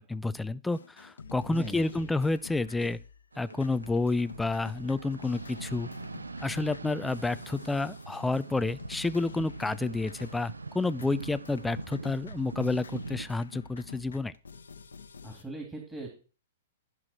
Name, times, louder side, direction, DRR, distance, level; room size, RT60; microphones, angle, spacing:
voice 1, 0.0-3.0 3.4-5.9 6.4-14.3, left 3 dB, 5° left, 0.5 m, -30 dB
sound 1, 0.7-3.2 3.5-10.6 10.9-15.4, left 5 dB, 80° left, 1.1 m, -47 dB
voice 2, 1.5-2.1 15.2-16.1, right 1 dB, 10° right, 3.1 m, -40 dB
sound 2, 3.3-13.4, right 3 dB, 90° right, 0.6 m, -43 dB
15.0 x 6.2 x 4.5 m
figure-of-eight pair, 110°, 0 cm